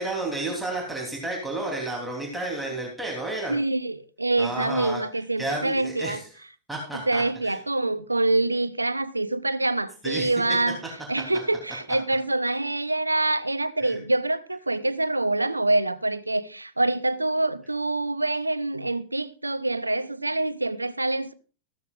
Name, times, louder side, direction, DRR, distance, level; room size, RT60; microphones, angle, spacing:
voice 1, 0.0-3.5 4.4-5.0 5.4-6.2 6.7-7.6 10.0-10.3 13.8-13.9, right 2 dB, 5° right, 3.2 m, -31 dB
voice 2, 3.5-6.2 7.1-10.8 11.1-21.3, right 2 dB, 85° right, 0.6 m, -25 dB
14.5 x 13.0 x 2.5 m
figure-of-eight pair, 90°, 0 cm